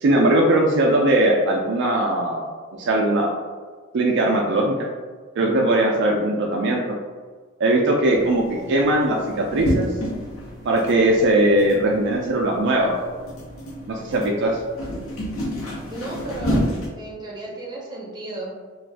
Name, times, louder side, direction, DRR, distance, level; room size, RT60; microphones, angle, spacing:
voice 1, 0.0-2.5 2.8-3.3 3.9-4.8 5.4-6.9 7.6-9.9 10.6-12.9 13.9-14.6, right 1 dB, 60° right, -1 dB, 0.4 m, -19 dB
sound 1, 8.1-16.9, equal, 85° left, 0.8 m, -30 dB
voice 2, 10.9-11.3 15.9-16.7 17.0-18.5, right 1 dB, 20° right, -4 dB, 0.7 m, -34 dB
2.5 x 2.3 x 3.3 m, 1.5 s
head